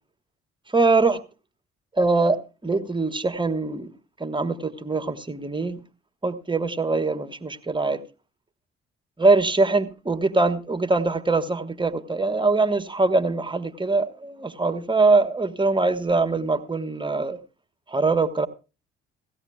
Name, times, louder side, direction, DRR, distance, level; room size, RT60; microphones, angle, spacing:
voice 1, 0.7-1.2 2.0-3.9 4.2-5.8 6.2-8.0 9.2-17.4 17.9-18.5, right 3 dB, 15° right, 1.3 m, -23 dB
17.5 x 16.0 x 2.3 m
figure-of-eight pair, 45°, 33 cm